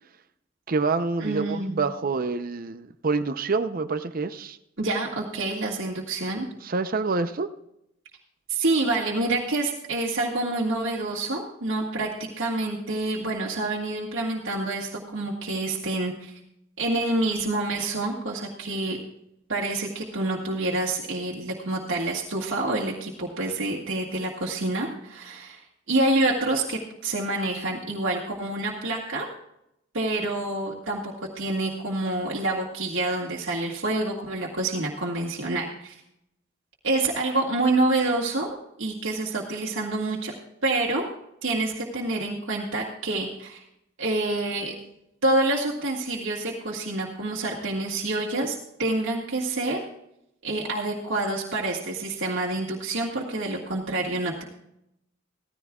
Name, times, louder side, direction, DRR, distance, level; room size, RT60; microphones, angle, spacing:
voice 1, 0.7-4.6 6.6-7.5, right 4 dB, 45° right, 10 dB, 0.6 m, -27 dB
voice 2, 1.2-1.8 4.8-6.5 8.5-16.3 16.8-19.0 19.5-29.3 29.9-36.0 36.8-40.3 40.6-41.0 41.4-43.6 44.0-44.8 45.2-49.8 50.4-54.4, right 2 dB, 75° right, -3 dB, 1.9 m, -27 dB
17.0 x 14.5 x 2.4 m, 0.80 s
head